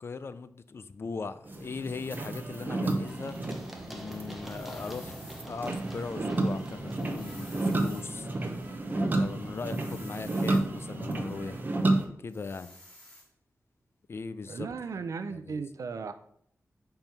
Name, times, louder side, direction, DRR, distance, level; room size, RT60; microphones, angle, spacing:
voice 1, 0.0-3.4 3.9-5.1 5.4-8.3 8.9-11.7 12.2-12.7 14.1-14.7 15.5-15.6, left 4 dB, 50° left, 13 dB, 0.4 m, -39 dB
sound 1, 1.5-12.1, right 2 dB, 35° right, 0.9 m, -31 dB
Run, 3.1-10.7, equal, 5° right, 0.9 m, -48 dB
sound 2, 4.4-5.5 6.9-8.1 9.5-10.6 12.3-13.3, left 1 dB, 20° left, 2.4 m, -51 dB
voice 2, 14.5-16.1, right 5 dB, 80° right, 10 dB, 0.5 m, -36 dB
5.4 x 4.5 x 6.0 m, 0.67 s
wide cardioid pair, 135°, 5 cm